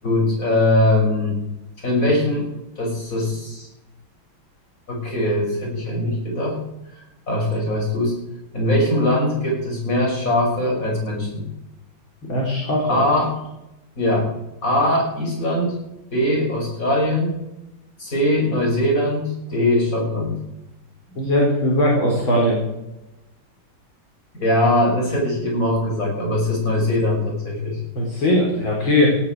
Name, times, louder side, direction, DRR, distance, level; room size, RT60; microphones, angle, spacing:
voice 1, 0.0-1.4 1.8-2.5 2.8-3.7 4.9-6.6 6.9-8.1 8.5-11.4 12.8-13.3 14.0-14.3 14.6-15.7 16.1-17.4 18.0-20.4 24.3-27.8, left 1 dB, 35° left, -1 dB, 7.2 m, -21 dB
voice 2, 12.3-13.0 21.2-22.6 27.9-29.2, left 1 dB, 65° left, -2 dB, 4.7 m, -19 dB
18.0 x 14.5 x 4.7 m, 0.90 s
omnidirectional pair, 2.3 m